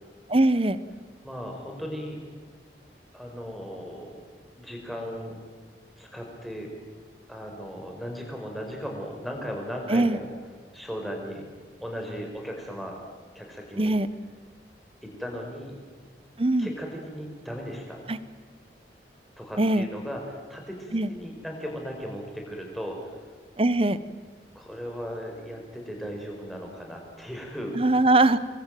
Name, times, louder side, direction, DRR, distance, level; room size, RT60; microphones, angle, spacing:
voice 1, 0.3-0.8 9.9-10.2 13.8-14.1 16.4-16.7 18.1-18.2 19.6-19.9 20.9-21.1 23.6-24.0 27.8-28.4, right 2 dB, 30° right, 15 dB, 0.9 m, -21 dB
voice 2, 1.2-2.2 3.1-4.2 4.6-5.4 6.0-6.7 7.3-10.3 10.7-11.5 11.8-13.0 13.4-14.0 15.0-15.8 16.6-18.0 19.4-23.2 24.6-27.8, equal, ahead, 1 dB, 5.2 m, -37 dB
26.5 x 22.0 x 9.2 m, 1.4 s
head